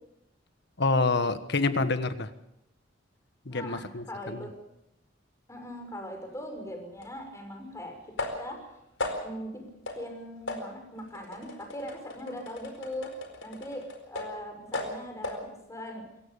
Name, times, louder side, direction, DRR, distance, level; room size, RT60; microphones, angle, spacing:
voice 1, 0.8-2.3 3.4-4.5, left 3 dB, 65° left, 10 dB, 1.4 m, -27 dB
voice 2, 3.5-4.5 5.5-8.0 8.4-8.7 9.2-9.6 9.9-13.1 13.4-16.0, equal, 15° left, 3 dB, 6.3 m, -40 dB
sound 1, 7.0-7.1 8.2-8.6 9.0-9.4 9.9-10.1 10.5-14.4 14.7-15.5, left 2 dB, 90° left, 4.5 m, -37 dB
27.0 x 15.5 x 7.0 m, 0.84 s
head